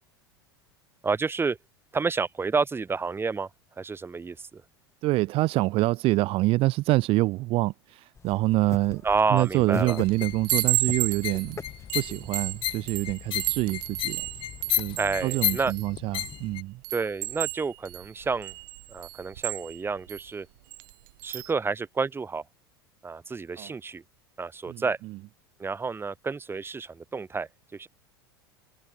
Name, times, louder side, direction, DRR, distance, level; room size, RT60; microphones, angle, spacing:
voice 1, 1.0-1.6 1.9-3.5 3.8-4.6 9.0-10.0 15.0-15.7 16.9-18.5 18.9-20.5 21.2-22.4 23.0-24.0 24.4-25.0 25.6-27.9, right 4 dB, 20° right, 2.8 m, -29 dB
voice 2, 5.0-9.0 9.3-11.6 11.9-14.3 14.8-16.8 23.6-23.7 24.7-25.2, right 19 dB, 45° right, 0.7 m, -26 dB
sound 1, 8.2-14.8, left 5 dB, 20° left, 5.4 m, -42 dB
Chime, 9.4-9.7 10.1-16.4 16.8-20.2 20.7-20.9 21.2-21.5, right 21 dB, 65° right, 1.3 m, -33 dB
sound 2, 9.9-16.6, left 14 dB, 45° left, 2.9 m, -33 dB
hypercardioid pair, 80°, 13 cm